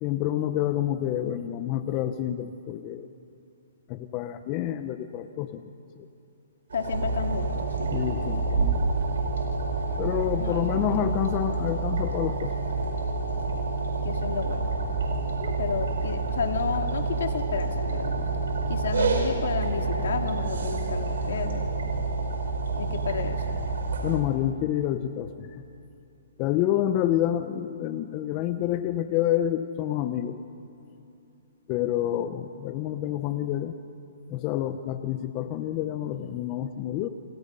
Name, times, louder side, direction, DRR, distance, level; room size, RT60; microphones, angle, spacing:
voice 1, 0.0-3.1 3.9-5.6 6.0-6.1 7.9-8.9 10.0-12.5 15.2-15.3 24.0-25.6 26.4-30.4 31.7-33.7 34.3-37.1, left 12 dB, 30° left, 9 dB, 0.9 m, -28 dB
voice 2, 6.7-7.9 10.4-11.3 14.0-14.7 15.4-18.2 18.7-21.7 22.8-23.6, left 6 dB, 70° left, 5 dB, 2.3 m, -32 dB
sound 1, 6.7-24.2, right 3 dB, 80° right, 5.1 m, -28 dB
29.5 x 25.5 x 5.5 m, 2.8 s
hypercardioid pair, 150°, 0 cm